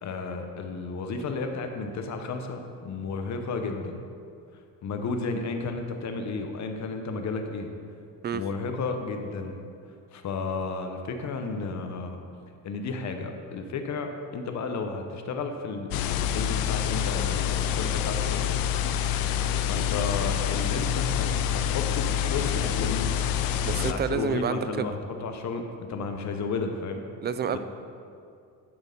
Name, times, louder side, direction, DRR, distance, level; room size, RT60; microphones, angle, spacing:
voice 1, 0.0-4.0 4.8-7.7 8.3-9.6 10.1-12.2 12.6-18.6 18.8-19.0 19.6-23.1 23.8-27.0 27.5-27.6, left 4 dB, 50° left, 5 dB, 0.9 m, -33 dB
sound 1, 15.9-23.9, left 9 dB, 80° left, 0.6 m, -27 dB
voice 2, 23.6-24.9 27.2-27.6, right 7 dB, 30° right, 11 dB, 0.4 m, -29 dB
12.0 x 4.5 x 5.3 m, 2.4 s
cardioid pair, 140°, 35 cm